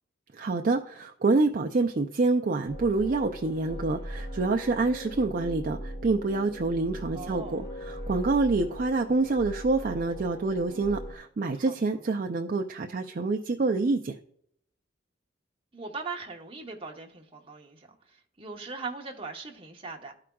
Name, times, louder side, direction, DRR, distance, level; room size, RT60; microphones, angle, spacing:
voice 1, 0.3-14.1, right 3 dB, 45° right, 4 dB, 0.4 m, -27 dB
sound 1, 2.7-11.2, equal, 55° left, 2.1 m, -40 dB
voice 2, 7.1-7.6 11.5-12.1 15.7-20.1, right 4 dB, 30° right, 1 dB, 1.0 m, -40 dB
13.5 x 4.8 x 2.3 m, 0.68 s
head